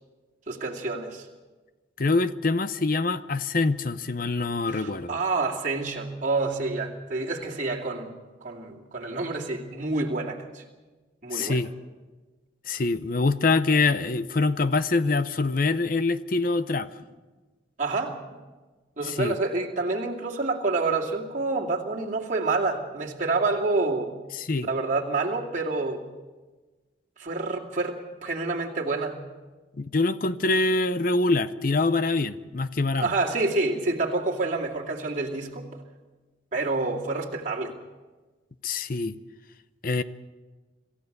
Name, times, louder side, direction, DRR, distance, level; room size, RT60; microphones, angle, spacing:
voice 1, 0.5-1.3 4.7-8.1 8.4-10.6 11.2-11.6 17.8-18.3 19.0-24.1 24.6-26.0 27.2-29.2 33.0-35.7 36.5-37.7, right 3 dB, 40° right, -2 dB, 2.5 m, -28 dB
voice 2, 2.0-5.2 11.3-11.7 12.7-16.9 19.0-19.3 24.3-24.7 29.8-33.1 38.6-39.2 39.8-40.0, left 3 dB, 45° left, 13 dB, 0.6 m, -25 dB
27.0 x 14.5 x 6.7 m, 1.3 s
head